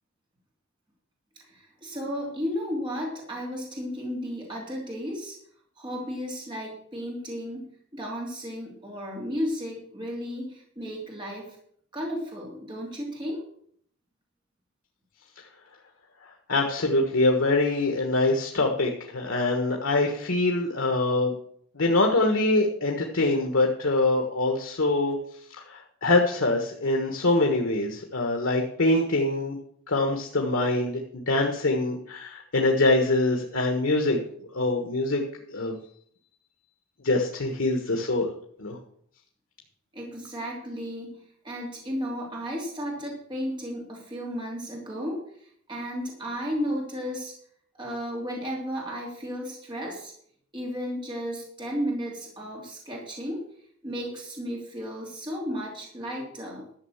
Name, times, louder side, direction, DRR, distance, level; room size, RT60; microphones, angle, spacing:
voice 1, 1.4-5.4 5.8-7.6 7.9-11.6 11.9-13.4 39.9-41.2 41.4-45.2 45.7-47.3 47.8-50.1 50.5-53.4 53.8-56.7, equal, 25° right, -2 dB, 2.9 m, -33 dB
voice 2, 16.5-21.3 21.7-25.2 25.7-29.6 29.9-34.2 34.5-35.2 35.5-35.7 37.0-38.3 38.6-38.8, left 2 dB, 75° left, 2 dB, 1.4 m, -24 dB
12.0 x 6.5 x 7.1 m, 0.63 s
head